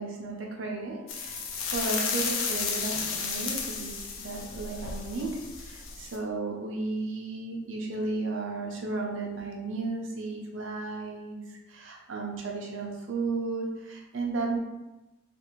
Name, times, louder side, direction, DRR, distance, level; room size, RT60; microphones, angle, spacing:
voice 1, 0.0-1.4 1.7-3.9 4.2-5.4 5.6-11.4 11.7-14.6, right 3 dB, 70° right, 0 dB, 0.6 m, -34 dB
sound 1, 1.1-6.2, left 5 dB, 90° left, 0.5 m, -33 dB
3.4 x 2.4 x 3.0 m, 1.0 s
head